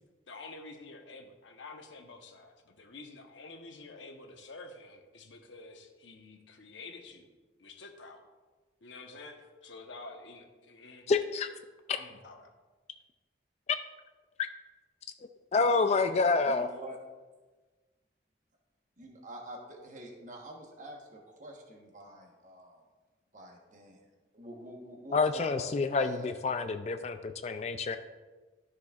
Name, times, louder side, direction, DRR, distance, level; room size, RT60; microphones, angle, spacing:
voice 1, 0.3-7.3 7.6-8.2 8.8-11.1 11.9-12.5, left 3 dB, 85° left, 3 dB, 1.0 m, -49 dB
voice 2, 11.1-11.5 15.5-16.7 25.1-28.0, left 4 dB, 35° left, 9 dB, 0.3 m, -28 dB
voice 3, 16.5-17.0 19.0-22.8 23.3-24.0 24.3-26.4, equal, 45° right, 0 dB, 1.2 m, -46 dB
13.0 x 6.2 x 2.4 m, 1.3 s
head